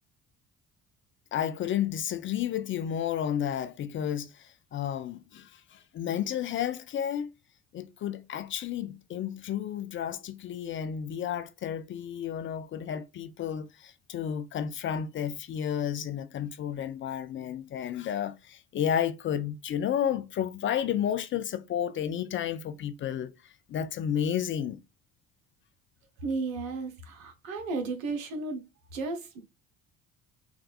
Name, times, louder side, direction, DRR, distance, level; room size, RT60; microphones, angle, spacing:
voice 1, 1.3-7.3 7.7-24.8, left 9 dB, 30° left, 0.4 m, -32 dB
voice 2, 26.2-28.7 28.9-29.4, right 3 dB, 80° right, 0.8 m, -34 dB
4.7 x 2.3 x 2.3 m
hypercardioid pair, 60°, 40 cm